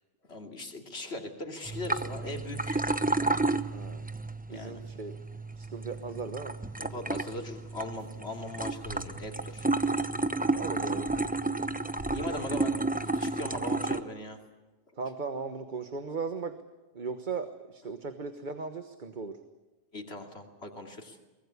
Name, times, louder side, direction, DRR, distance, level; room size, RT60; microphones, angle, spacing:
voice 1, 0.3-2.9 3.2-3.4 4.5-4.8 6.8-9.7 12.1-14.4 19.9-21.2, left 1 dB, 85° left, 4 dB, 3.1 m, -39 dB
sound 1, 1.7-14.0, right 2 dB, 10° right, 0.8 m, -32 dB
voice 2, 3.7-4.0 4.5-5.2 5.5-6.5 10.5-11.1 14.9-16.5 16.9-19.4, right 4 dB, 50° right, 9 dB, 1.4 m, -37 dB
sound 2, 5.8-6.1 6.9-12.4, equal, 65° right, 8.1 m, -50 dB
23.5 x 19.5 x 9.7 m, 1.2 s
omnidirectional pair, 1.1 m